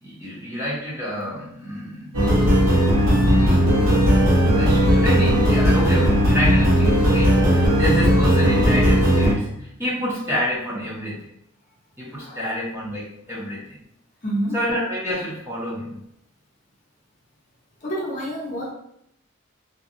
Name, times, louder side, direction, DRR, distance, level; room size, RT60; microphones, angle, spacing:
voice 1, 0.0-2.2 3.4-3.7 4.5-11.2 12.0-13.8 14.5-16.0, equal, 10° right, -7 dB, 0.7 m, -28 dB
sound 1, 2.1-9.3, equal, 80° right, 1.1 m, -17 dB
voice 2, 12.2-12.5 14.2-14.6 17.8-18.7, equal, 35° left, -5 dB, 0.7 m, -28 dB
2.7 x 2.2 x 2.5 m, 0.75 s
head